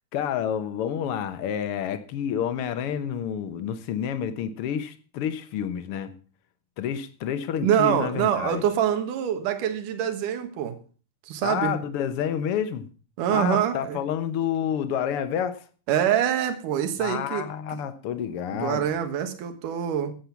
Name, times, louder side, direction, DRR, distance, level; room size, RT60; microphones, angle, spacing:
voice 1, 0.1-6.1 6.8-8.6 11.4-12.9 13.3-15.6 17.0-18.8, left 9 dB, 65° left, 1.4 m, -29 dB
voice 2, 7.6-10.8 11.3-11.8 13.2-14.0 15.9-17.8 18.5-20.1, right 9 dB, 70° right, 2.9 m, -25 dB
15.5 x 7.9 x 5.8 m
omnidirectional pair, 3.9 m